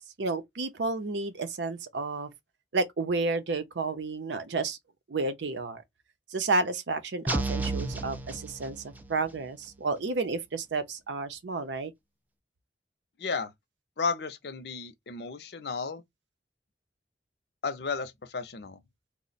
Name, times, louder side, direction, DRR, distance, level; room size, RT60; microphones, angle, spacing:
voice 1, 0.2-2.3 2.7-4.8 5.1-5.8 6.3-8.8 9.1-11.9, right 3 dB, 85° right, 0.6 m, -31 dB
sound 1, 7.3-9.2, right 2 dB, 10° right, 0.3 m, -32 dB
voice 2, 13.2-13.5 14.0-16.0 17.6-18.8, left 4 dB, 65° left, 0.6 m, -33 dB
3.1 x 2.1 x 4.0 m
head